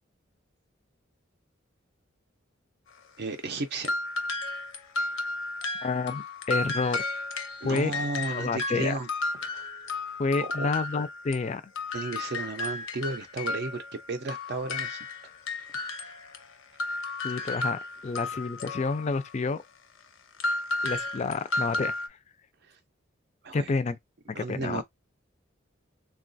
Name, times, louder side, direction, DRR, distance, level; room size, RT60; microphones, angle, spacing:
voice 1, 3.2-4.0 7.6-9.1 9.4-9.7 10.4-10.7 11.9-13.8 14.1-15.1 15.6-15.9 22.6-22.8 23.4-23.7 24.3-24.8, right 3 dB, 55° right, 0.5 m, -34 dB
sound 1, 3.8-11.5 11.8-19.3 20.4-22.1, left 2 dB, 75° left, 0.6 m, -33 dB
voice 2, 5.8-7.0 7.6-7.9 8.3-9.0 10.2-11.6 17.2-19.6 20.8-21.9 23.5-24.0 24.3-24.8, left 4 dB, 35° left, 0.4 m, -29 dB
3.7 x 2.3 x 2.6 m
head